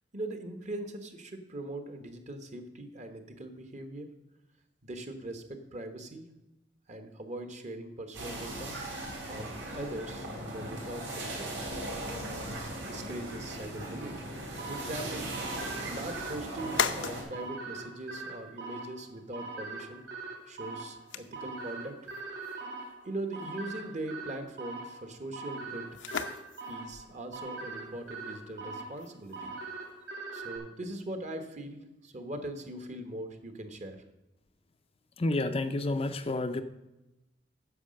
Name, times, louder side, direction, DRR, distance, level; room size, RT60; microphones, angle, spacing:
voice 1, 0.1-4.1 4.8-6.3 6.9-8.8 9.3-11.5 12.3-14.2 14.6-15.3 15.9-20.0 20.5-22.1 23.0-26.0 26.7-29.5 30.3-34.0, right 1 dB, 40° right, 7 dB, 1.2 m, -41 dB
sound 1, 8.1-17.2, right 1 dB, 85° right, 3.6 m, -38 dB
sound 2, 12.9-30.1, left 7 dB, 75° left, 0.7 m, -42 dB
sound 3, 14.6-30.6, right 3 dB, 70° right, 2.4 m, -42 dB
voice 2, 35.2-36.6, left 2 dB, 30° left, 8 dB, 0.5 m, -30 dB
9.7 x 6.6 x 6.4 m, 0.96 s
head